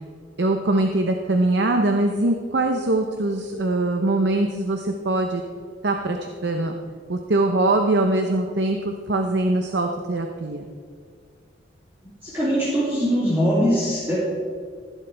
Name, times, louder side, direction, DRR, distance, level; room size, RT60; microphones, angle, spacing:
voice 1, 0.4-5.4 5.8-6.7 7.1-10.7, right 2 dB, 65° right, 4 dB, 0.8 m, -22 dB
voice 2, 12.2-14.2, equal, 15° right, -10 dB, 2.9 m, -21 dB
15.0 x 12.0 x 3.4 m, 2.1 s
head